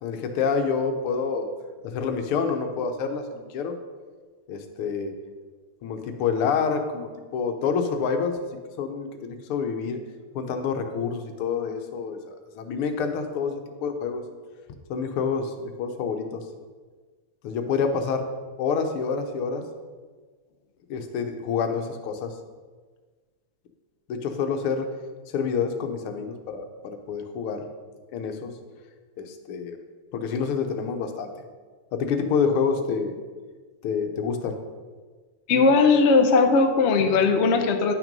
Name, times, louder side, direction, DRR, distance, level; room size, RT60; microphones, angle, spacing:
voice 1, 0.0-1.5 1.8-3.8 4.5-5.1 5.8-8.4 8.8-10.0 10.4-12.2 12.6-14.2 14.9-16.4 17.4-18.3 18.6-19.6 20.9-22.3 24.1-24.9 25.3-27.6 28.1-28.5 29.2-29.8 30.1-31.3 31.9-33.2 33.8-34.6, left 5 dB, 80° left, 6 dB, 1.8 m, -27 dB
voice 2, 35.5-37.9, left 4 dB, 65° left, 5 dB, 0.6 m, -18 dB
11.0 x 6.1 x 5.3 m, 1.4 s
omnidirectional pair, 2.4 m